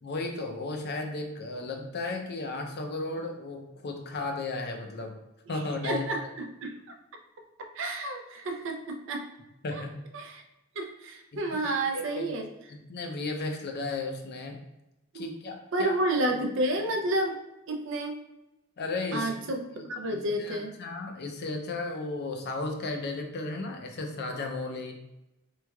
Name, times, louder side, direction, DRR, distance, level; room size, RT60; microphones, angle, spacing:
voice 1, 0.0-5.2 5.5-6.3 9.6-9.9 11.3-12.3 12.7-14.6 15.1-15.9 18.8-25.0, left 2 dB, 50° left, 3 dB, 0.5 m, -35 dB
voice 2, 5.8-6.2 6.6-6.7 7.7-9.2 9.7-9.8 10.1-10.4 10.8-12.5 15.1-15.3 15.7-17.4 17.7-18.2 19.1-20.7, right 1 dB, 65° right, 4 dB, 0.5 m, -30 dB
3.4 x 3.1 x 2.3 m, 0.93 s
head